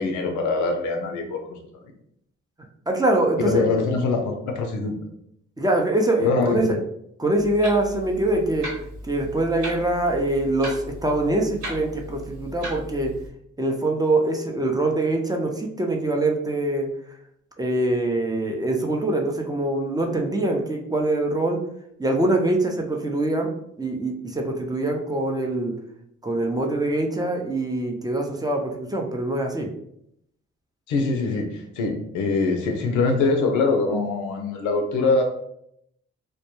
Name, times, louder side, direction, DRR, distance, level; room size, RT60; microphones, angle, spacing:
voice 1, 0.0-1.6 3.4-5.0 6.2-6.8 30.9-35.2, left 3 dB, 80° left, 4 dB, 0.5 m, -23 dB
voice 2, 2.9-3.6 5.6-6.8 7.2-8.7 9.0-13.1 13.6-17.2 17.6-21.6 22.0-23.5 23.8-25.8 26.2-29.7, right 2 dB, 15° right, 1 dB, 0.5 m, -24 dB
Clock, 7.4-13.3, equal, 80° right, 1.1 m, -37 dB
2.1 x 2.1 x 2.9 m, 0.73 s
supercardioid pair, 50°, 29 cm